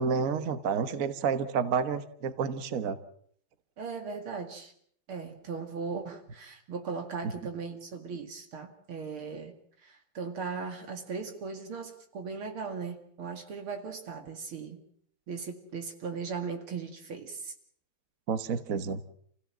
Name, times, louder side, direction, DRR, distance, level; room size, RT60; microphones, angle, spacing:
voice 1, 0.0-3.0 18.3-19.0, right 6 dB, 45° right, 11 dB, 1.4 m, -29 dB
voice 2, 3.8-4.7 5.1-14.8 15.3-17.5, right 5 dB, 70° right, 5 dB, 3.0 m, -38 dB
29.0 x 16.5 x 7.4 m, 0.65 s
omnidirectional pair, 2.4 m